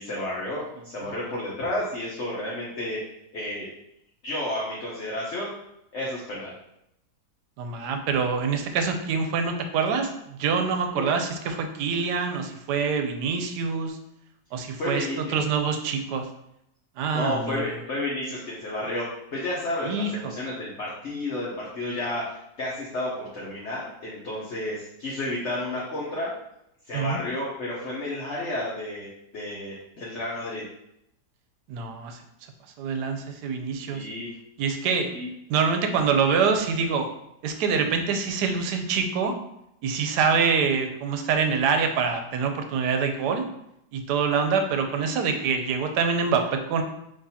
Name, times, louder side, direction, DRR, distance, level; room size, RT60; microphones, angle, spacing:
voice 1, 0.0-3.0 3.3-3.7 4.2-5.5 5.9-6.5 11.0-11.1 14.8-15.4 17.1-26.3 26.9-30.6 33.9-34.3 35.1-35.3 40.3-40.5, left 1 dB, 50° left, -5 dB, 1.0 m, -31 dB
voice 2, 7.6-14.0 14.5-15.1 15.3-16.2 17.0-17.7 19.8-20.3 26.9-27.2 31.7-32.2 32.8-34.1 34.6-35.1 35.5-37.1 37.4-39.3 39.8-43.4 43.9-46.8, right 5 dB, 80° right, 6 dB, 1.2 m, -25 dB
6.0 x 3.0 x 2.8 m, 0.81 s
omnidirectional pair, 1.8 m